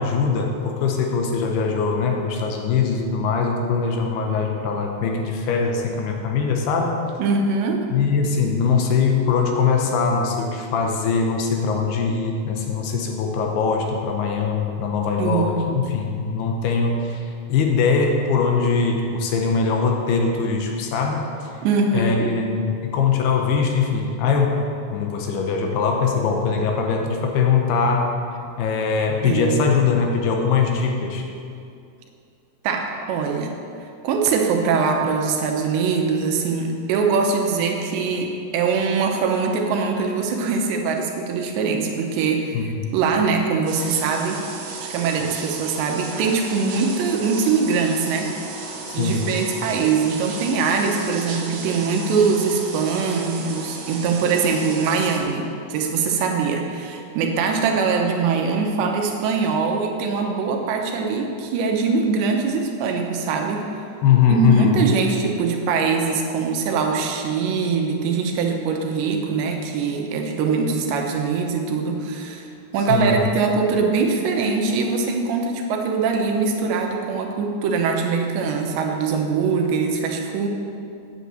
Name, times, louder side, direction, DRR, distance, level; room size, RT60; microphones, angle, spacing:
voice 1, 0.0-7.0 7.9-21.5 21.9-28.1 28.6-31.3 42.5-42.9 48.9-49.3 64.0-64.8 72.9-73.3, left 5 dB, 75° left, 2 dB, 2.7 m, -21 dB
voice 2, 7.2-7.9 15.2-15.9 21.6-22.3 29.2-29.7 32.6-33.5 34.0-42.6 42.9-44.4 44.8-48.3 48.9-63.6 64.3-72.5 72.7-80.5, right 5 dB, 90° right, 2 dB, 3.2 m, -22 dB
sound 1, 43.7-55.2, right 4 dB, 65° right, 2.3 m, -34 dB
8.3 x 8.3 x 7.8 m, 2.5 s
omnidirectional pair, 5.0 m